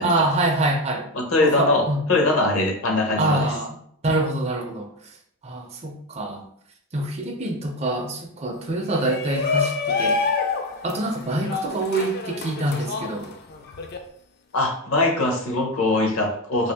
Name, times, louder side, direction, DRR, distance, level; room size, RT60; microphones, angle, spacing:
voice 1, 0.0-1.1 1.4-2.0 3.2-3.8 4.0-4.9 5.4-6.4 6.9-10.2 10.8-13.3, right 2 dB, 30° right, 2 dB, 0.4 m, -25 dB
voice 2, 1.1-3.5 14.5-16.7, left 2 dB, 70° left, 2 dB, 0.7 m, -22 dB
Shout, 8.9-14.0, left 4 dB, 45° left, 0.4 m, -27 dB
3.2 x 2.6 x 3.3 m, 0.68 s
head